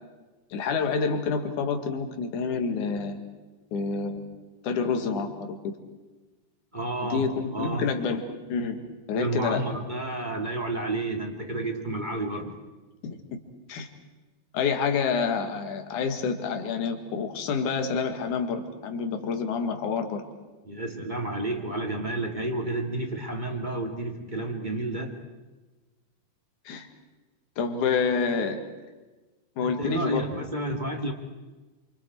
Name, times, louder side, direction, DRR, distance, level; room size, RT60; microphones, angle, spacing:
voice 1, 0.5-3.2 3.7-4.3 4.6-5.6 7.1-8.2 8.5-8.8 9.1-9.6 13.0-13.2 13.7-13.9 14.5-20.2 26.6-26.9 27.6-28.6 29.6-30.3, left 5 dB, 65° left, 5 dB, 3.3 m, -28 dB
voice 2, 6.7-7.9 9.1-12.6 20.7-25.2 29.6-31.1, right 2 dB, 15° right, 3 dB, 1.9 m, -31 dB
28.5 x 26.5 x 4.7 m, 1.2 s
omnidirectional pair, 4.0 m